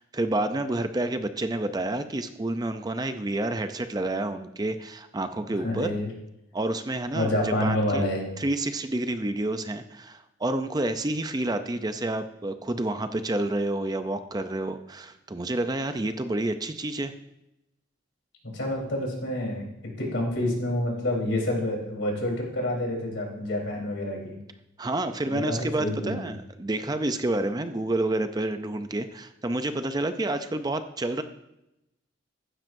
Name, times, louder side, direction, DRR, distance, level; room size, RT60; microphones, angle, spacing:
voice 1, 0.0-5.9 6.5-8.1 8.4-17.1 24.8-31.2, right 2 dB, 20° right, 9 dB, 0.5 m, -29 dB
voice 2, 5.5-6.1 7.1-8.2 18.5-19.6 20.0-24.4 25.2-26.3, left 1 dB, 75° left, -2 dB, 3.8 m, -28 dB
15.0 x 12.0 x 2.7 m, 0.88 s
head